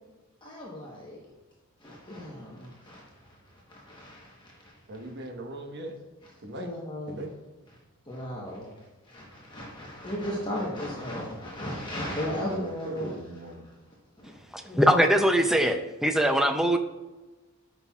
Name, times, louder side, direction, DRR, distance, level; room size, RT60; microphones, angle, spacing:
voice 1, 0.4-1.2 1.8-4.7 6.5-7.2 8.1-8.7 9.1-13.2 14.2-14.4 14.6-15.0, equal, 20° left, -3 dB, 1.1 m, -36 dB
voice 2, 4.9-6.0 6.4-6.7 7.1-7.3 12.3-13.6, right 1 dB, 55° right, 2 dB, 1.2 m, -39 dB
voice 3, 14.5-16.8, equal, ahead, 5 dB, 0.4 m, -22 dB
12.5 x 5.7 x 2.4 m, 1.2 s
head